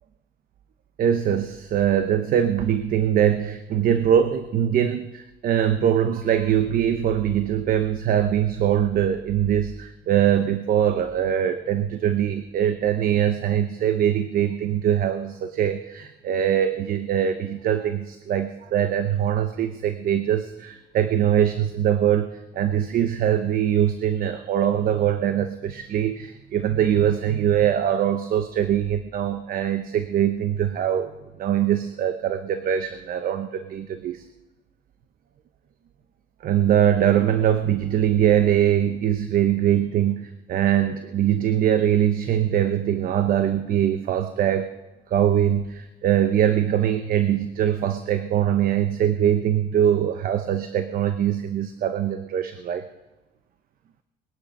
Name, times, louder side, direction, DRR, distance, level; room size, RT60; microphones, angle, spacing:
voice 1, 1.0-31.1 31.4-34.2 36.4-44.7 45.1-52.9, right 10 dB, 60° right, 10 dB, 0.9 m, -22 dB
21.0 x 10.0 x 5.4 m, 1.1 s
cardioid pair, 110°, 17 cm